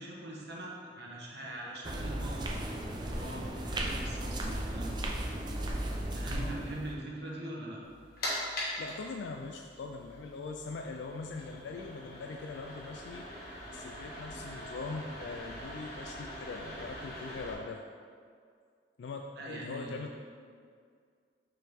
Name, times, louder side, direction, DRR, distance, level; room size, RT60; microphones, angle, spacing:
voice 1, 0.0-2.6 3.0-5.0 6.1-7.8 19.3-20.0, right 1 dB, 70° right, -3 dB, 1.2 m, -42 dB
sound 1, 1.8-6.9, right 1 dB, 25° right, 0.5 m, -35 dB
sound 2, 7.8-17.5, left 1 dB, 55° left, 1.3 m, -42 dB
voice 2, 8.8-13.2 13.7-17.8 19.0-20.1, left 3 dB, 80° left, 2 dB, 0.3 m, -41 dB
6.1 x 4.7 x 3.5 m, 2.1 s
head